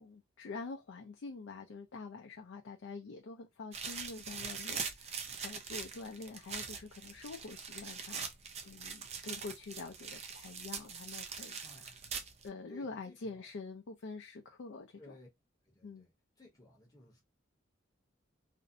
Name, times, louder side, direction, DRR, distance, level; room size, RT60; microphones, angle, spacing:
voice 1, 0.0-8.3 8.6-11.6 12.4-15.1 15.8-16.1, left 4 dB, 65° left, 0.4 m, -46 dB
sound 1, 3.7-12.5, right 6 dB, 35° right, 0.4 m, -42 dB
voice 2, 11.6-12.0 12.7-13.5 15.0-15.3 15.6-17.2, left 2 dB, 20° left, 0.8 m, -57 dB
2.5 x 2.0 x 2.5 m
head